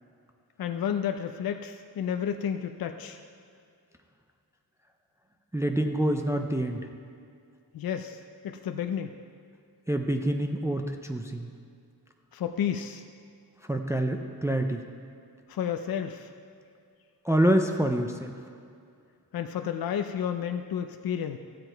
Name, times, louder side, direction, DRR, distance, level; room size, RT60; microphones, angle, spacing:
voice 1, 0.6-3.2 7.7-8.2 8.4-9.2 12.3-13.0 15.5-16.3 19.3-21.4, left 8 dB, 70° left, 6 dB, 0.5 m, -31 dB
voice 2, 5.5-6.8 9.9-11.5 13.7-14.8 17.2-18.4, right 1 dB, 10° right, 4 dB, 0.4 m, -26 dB
15.5 x 7.8 x 4.5 m, 2.3 s
wide cardioid pair, 165°, 37 cm